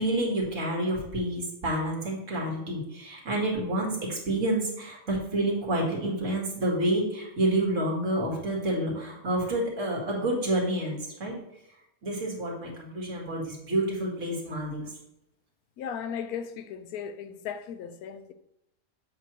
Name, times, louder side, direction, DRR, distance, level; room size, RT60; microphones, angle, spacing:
voice 1, 0.0-11.4 12.0-14.9, right 1 dB, 55° right, 2.1 m, -29 dB
voice 2, 15.8-18.3, left 7 dB, 90° left, 1.1 m, -36 dB
7.5 x 3.1 x 6.0 m
omnidirectional pair, 1.5 m